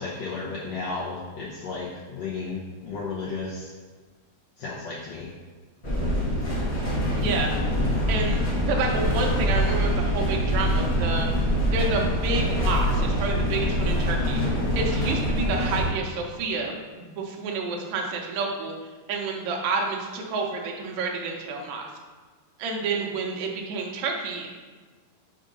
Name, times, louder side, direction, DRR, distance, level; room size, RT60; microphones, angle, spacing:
voice 1, 0.0-3.7 4.6-5.3, left 4 dB, 80° left, -6 dB, 1.5 m, -33 dB
sound 1, 5.8-15.9, equal, 40° left, 0.9 m, -24 dB
voice 2, 7.2-7.5 8.1-11.3 11.7-14.4 14.8-18.7 19.1-21.9 22.6-24.5, right 4 dB, 75° right, 0 dB, 1.7 m, -29 dB
5.2 x 3.9 x 5.2 m, 1.4 s
omnidirectional pair, 4.2 m